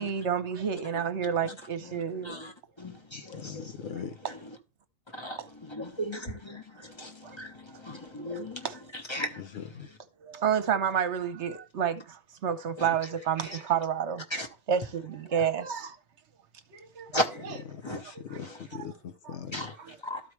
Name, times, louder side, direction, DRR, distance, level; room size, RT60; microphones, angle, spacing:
voice 1, 0.0-2.4 5.4-5.5 7.2-7.4 8.3-8.8 10.2-14.2 14.7-16.0 16.7-17.1 17.4-17.6 18.7-18.9 19.2-19.4 19.8-20.0, right 8 dB, 65° right, 1.0 m, -30 dB
voice 2, 1.9-2.5 2.8-4.1 5.1-8.7 9.1-9.4 12.8-12.9 14.3-14.5 17.1-17.4 17.8-18.0 19.5-19.7 20.1-20.2, equal, 25° left, 1.1 m, -36 dB
voice 3, 3.1-4.2 9.4-9.9 17.7-19.7, left 8 dB, 65° left, 0.9 m, -41 dB
13.0 x 4.6 x 3.2 m
omnidirectional pair, 1.4 m